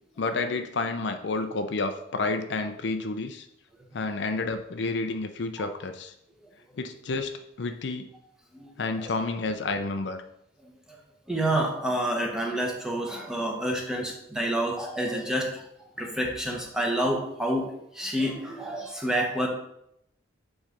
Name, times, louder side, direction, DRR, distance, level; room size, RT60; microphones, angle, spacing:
voice 1, 0.2-3.5 3.9-6.1 6.8-7.3 7.6-8.1 8.8-10.2, left 3 dB, 65° left, 7 dB, 0.5 m, -30 dB
voice 2, 10.6-11.0 11.3-15.6 16.0-19.5, right 1 dB, 5° right, 0 dB, 1.0 m, -28 dB
7.4 x 3.2 x 5.1 m, 0.77 s
head